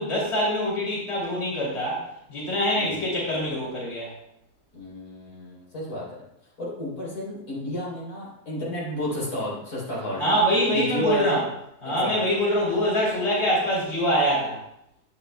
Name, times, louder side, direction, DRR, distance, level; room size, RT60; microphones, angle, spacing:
voice 1, 0.0-2.0 2.3-4.1 10.1-11.5 11.8-14.6, equal, 45° left, -6 dB, 3.1 m, -24 dB
voice 2, 2.7-3.1 4.7-6.1 6.6-10.4 10.6-11.4 11.8-12.1, left 1 dB, 85° left, -6 dB, 4.1 m, -31 dB
11.0 x 8.6 x 2.2 m, 0.79 s
omnidirectional pair, 1.6 m